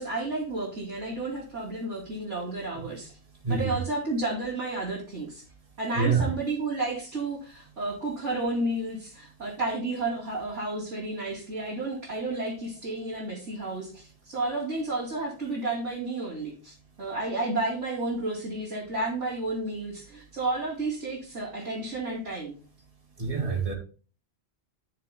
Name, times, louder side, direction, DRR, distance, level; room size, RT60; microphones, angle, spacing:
voice 1, 0.0-3.1 3.5-5.4 5.8-22.5, right 2 dB, 85° right, 3.3 m, -31 dB
voice 2, 3.4-3.8 5.9-6.3 23.2-23.7, right 5 dB, 30° right, 2.4 m, -26 dB
15.0 x 6.7 x 2.3 m
omnidirectional pair, 1.2 m